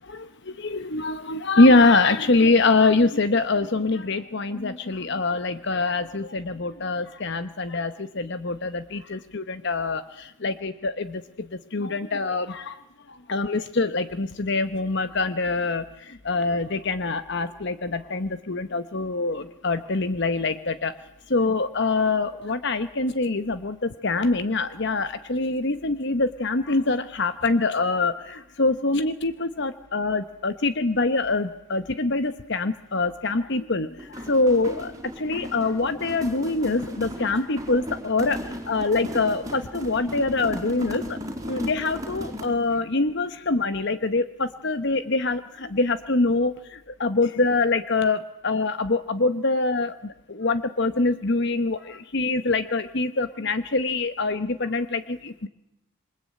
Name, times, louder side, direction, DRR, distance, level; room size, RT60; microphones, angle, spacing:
voice 1, 0.0-12.8 13.1-20.9 21.3-41.2 41.5-55.5, left 3 dB, 50° left, 11 dB, 1.0 m, -24 dB
sound 1, 34.0-42.7, equal, 15° right, 4.6 m, -36 dB
27.0 x 24.0 x 8.7 m, 0.87 s
head